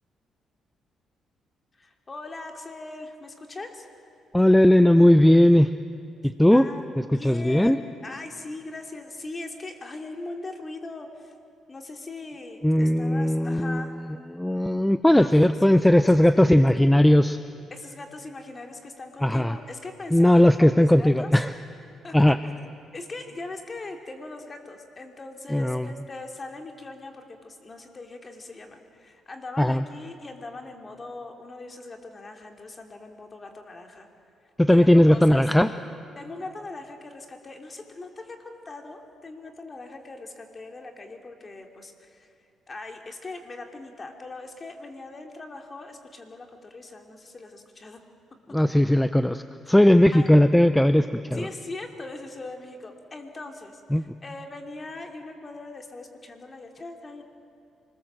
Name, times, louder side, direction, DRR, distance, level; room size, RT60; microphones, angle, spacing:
voice 1, 1.7-3.9 6.5-11.3 11.7-14.0 15.1-15.3 15.9-16.0 16.3-16.5 16.8-16.9 17.7-21.3 22.0-22.2 22.9-34.1 34.7-35.5 36.1-42.3 42.7-48.0 48.5-48.6 50.1-50.3 51.3-57.2, left 2 dB, 30° left, 4 dB, 2.9 m, -40 dB
voice 2, 4.3-5.7 6.2-6.7 7.1-7.8 12.6-13.9 14.3-17.4 19.2-19.6 20.1-21.5 22.1-22.4 25.5-25.9 29.6-29.8 34.6-35.7 48.5-51.5 53.9-54.1, left 1 dB, 5° left, 11 dB, 0.6 m, -18 dB
26.5 x 20.5 x 7.6 m, 2.5 s
cardioid pair, 90°, 0 cm